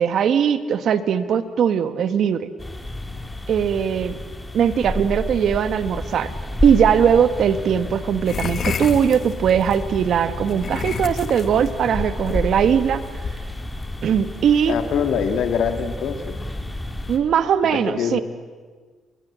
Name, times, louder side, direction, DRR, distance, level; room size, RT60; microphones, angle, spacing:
voice 1, 0.0-2.5 3.5-4.2 4.5-6.3 6.6-13.0 14.0-14.8 17.1-18.2, right 8 dB, 65° right, 11 dB, 1.5 m, -20 dB
sound 1, 2.6-17.2, left 1 dB, 10° left, 3.6 m, -31 dB
sound 2, 8.3-9.8 10.4-13.9, left 6 dB, 50° left, 1.8 m, -30 dB
voice 2, 14.7-16.4 17.9-18.2, left 7 dB, 75° left, 7 dB, 2.4 m, -23 dB
29.5 x 22.0 x 7.6 m, 1.5 s
cardioid pair, 90°, 0 cm